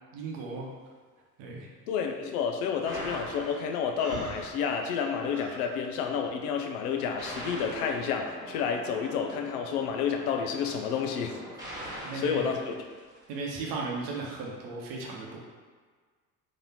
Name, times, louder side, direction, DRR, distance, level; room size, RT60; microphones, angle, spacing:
voice 1, 0.1-0.7 1.4-1.7 11.9-12.5 13.3-15.4, right 3 dB, 50° right, -1 dB, 0.9 m, -36 dB
voice 2, 1.9-11.4 11.8-12.7, left 6 dB, 65° left, 4 dB, 0.6 m, -30 dB
sound 1, 2.9-4.3 7.0-13.5, equal, 10° right, 1.3 m, -42 dB
Breathing, 4.0-5.7, right 2 dB, 30° right, 0.9 m, -41 dB
3.9 x 2.7 x 2.8 m, 1.5 s
figure-of-eight pair, 65°, 49 cm